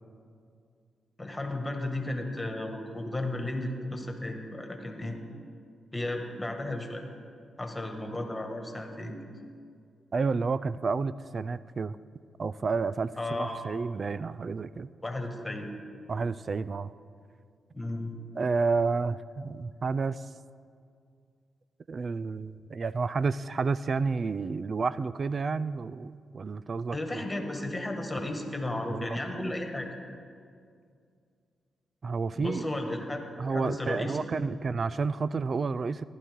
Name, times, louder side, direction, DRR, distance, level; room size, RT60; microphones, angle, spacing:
voice 1, 1.2-5.2 5.9-7.0 7.6-9.2 13.2-13.6 15.0-15.7 17.7-18.1 26.9-29.9 32.3-34.2, left 1 dB, 20° left, 3 dB, 1.7 m, -34 dB
voice 2, 10.1-12.0 12.4-14.9 16.1-16.9 18.4-20.2 21.9-27.3 28.9-29.5 32.0-32.7 33.4-36.0, right 4 dB, 50° right, 16 dB, 0.3 m, -30 dB
15.0 x 11.5 x 3.7 m, 2.3 s
cardioid pair, 60°, 0 cm